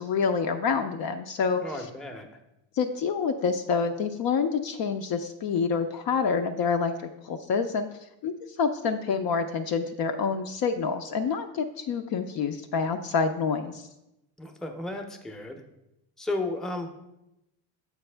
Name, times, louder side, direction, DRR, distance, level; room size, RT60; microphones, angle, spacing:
voice 1, 0.0-1.9 2.8-7.9 8.2-8.3 8.6-13.9, left 5 dB, 50° left, 6 dB, 0.5 m, -27 dB
voice 2, 1.6-2.3 14.4-15.6 16.2-16.9, left 2 dB, ahead, 5 dB, 0.6 m, -33 dB
7.1 x 4.6 x 3.3 m, 0.90 s
supercardioid pair, 90°, 48 cm